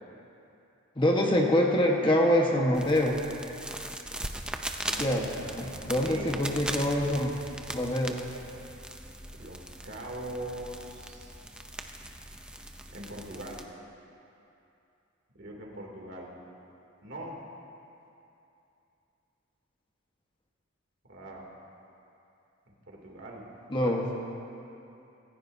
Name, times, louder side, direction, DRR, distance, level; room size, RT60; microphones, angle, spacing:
voice 1, 1.0-3.2 5.0-5.2 5.6-7.3 7.7-8.2 23.7-24.1, left 1 dB, 25° left, -1 dB, 1.3 m, -25 dB
sound 1, 2.7-13.6, right 1 dB, 5° right, 0.6 m, -40 dB
voice 2, 4.8-6.4 9.3-11.3 12.9-13.6 15.3-16.3 17.0-17.4 21.1-21.4 22.7-23.4 23.8-24.0, right 1 dB, 60° right, -2 dB, 2.9 m, -41 dB
26.5 x 15.0 x 2.8 m, 2.8 s
head